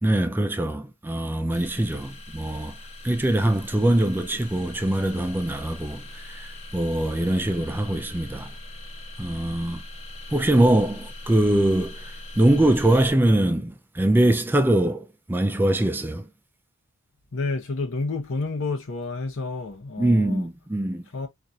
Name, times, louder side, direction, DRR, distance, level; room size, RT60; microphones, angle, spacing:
voice 1, 0.0-2.8 3.0-8.5 9.2-9.8 10.3-16.3 20.0-21.0, right 1 dB, 10° right, 0.3 m, -23 dB
sound 1, 1.5-13.1, left 1 dB, 30° left, 1.0 m, -41 dB
voice 2, 17.3-20.5 21.1-21.3, left 3 dB, 60° left, 0.9 m, -29 dB
3.9 x 2.5 x 2.6 m
head